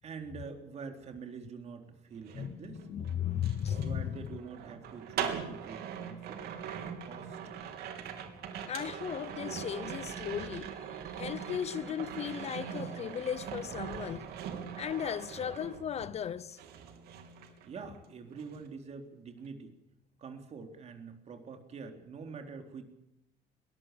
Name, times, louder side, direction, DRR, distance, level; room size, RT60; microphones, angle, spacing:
voice 1, 0.0-2.9 3.8-7.4 17.6-19.7 20.2-22.8, right 5 dB, 40° right, 3.9 m, -46 dB
sound 1, 2.1-16.3 16.6-18.1 18.3-18.7, right 8 dB, 80° right, 3.4 m, -41 dB
voice 2, 2.3-4.3 8.7-14.3 14.8-16.6, left 9 dB, 40° left, 0.8 m, -36 dB
22.5 x 19.5 x 7.0 m
cardioid pair, 145°, 16 cm